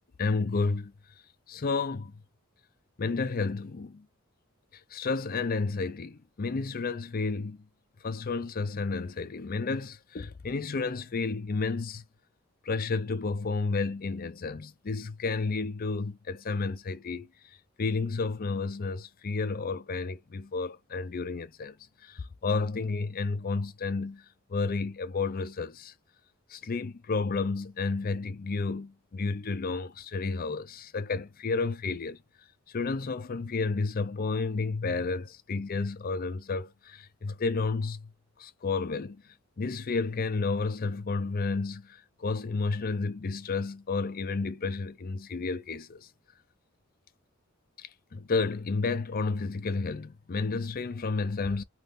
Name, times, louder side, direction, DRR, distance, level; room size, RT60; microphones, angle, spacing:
voice 1, 0.2-0.9 1.5-2.1 3.0-4.0 4.9-7.6 8.0-12.0 12.7-17.3 17.8-21.8 22.1-24.2 24.5-25.9 26.5-32.2 32.7-38.1 38.4-39.2 39.6-46.1 47.8-51.6, left 4 dB, 45° left, 0.5 m, -31 dB
3.0 x 2.5 x 3.6 m
head